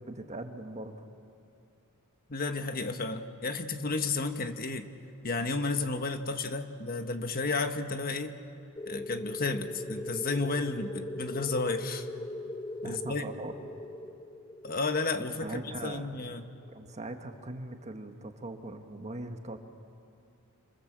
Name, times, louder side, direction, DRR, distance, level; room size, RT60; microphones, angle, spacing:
voice 1, 0.1-0.9 12.8-13.5 15.4-16.1 16.7-19.6, right 2 dB, 30° right, 6 dB, 1.5 m, -40 dB
voice 2, 2.3-4.9 5.2-8.4 8.9-12.1 12.8-13.3 14.6-16.4, left 3 dB, 45° left, 7 dB, 1.3 m, -32 dB
sound 1, 8.8-17.1, left 1 dB, 20° left, 1.3 m, -41 dB
28.5 x 27.5 x 7.5 m, 2.6 s
head